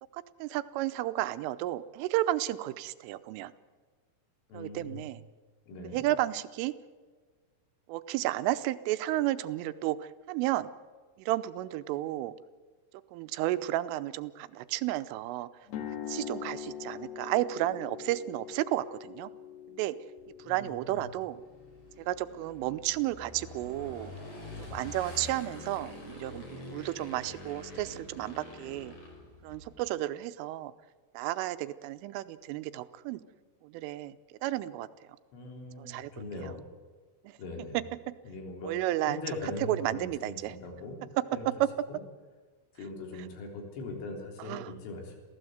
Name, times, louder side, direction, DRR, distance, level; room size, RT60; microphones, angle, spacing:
voice 1, 0.1-3.5 4.5-5.2 5.8-6.7 7.9-10.7 11.2-12.3 13.1-15.5 16.1-19.3 19.7-20.0 20.4-21.4 22.0-24.1 24.7-28.9 29.4-30.7 31.1-33.2 33.6-34.2 34.4-34.9 35.8-36.1 36.4-36.5 37.2-37.4 37.7-37.8 38.6-39.2 39.6-40.6 41.5-41.7 44.4-44.7, right 15 dB, 85° right, 12 dB, 3.3 m, -32 dB
voice 2, 4.5-5.0 5.7-6.0 20.4-21.1 35.3-36.6 37.4-37.8 38.3-41.0 41.3-41.5 41.9-42.0 42.8-45.1, left 2 dB, 80° left, 2 dB, 6.2 m, -41 dB
sound 1, 15.7-23.7, left 9 dB, 60° left, 3.1 m, -44 dB
Motorcycle / Engine, 20.2-29.9, left 2 dB, 35° left, 5.8 m, -46 dB
28.0 x 16.0 x 8.0 m, 1.4 s
omnidirectional pair, 5.7 m